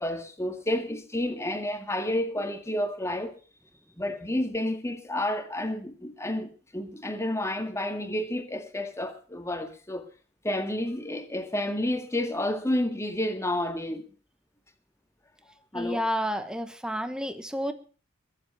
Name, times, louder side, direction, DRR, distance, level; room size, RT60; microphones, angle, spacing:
voice 1, 0.0-3.4 4.0-10.1 10.4-14.1 15.7-16.0, left 1 dB, 15° left, 2.1 m, -30 dB
voice 2, 15.7-17.7, equal, 5° right, 1.3 m, -30 dB
22.0 x 7.8 x 6.9 m
head